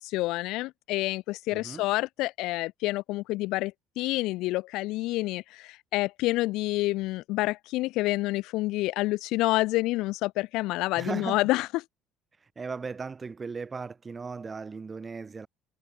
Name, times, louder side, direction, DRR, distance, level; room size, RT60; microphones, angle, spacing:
voice 1, 0.0-11.8, left 19 dB, 65° left, 1.3 m, -28 dB
voice 2, 1.5-1.8 11.0-11.4 12.4-15.5, right 4 dB, 15° right, 4.0 m, -37 dB
cardioid pair, 175°, 0 cm